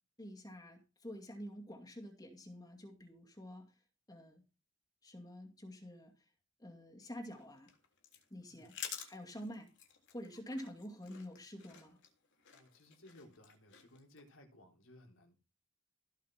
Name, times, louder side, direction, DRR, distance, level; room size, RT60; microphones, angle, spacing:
voice 1, 0.2-3.8 4.1-4.4 5.0-6.2 6.6-7.7 8.3-8.8 9.1-9.7 10.1-12.0, equal, 20° left, 2.3 m, -48 dB
sound 1, 7.3-14.2, left 8 dB, 60° left, 3.4 m, -51 dB
voice 2, 12.5-15.4, left 1 dB, 85° left, 3.8 m, -60 dB
16.5 x 5.7 x 5.9 m
head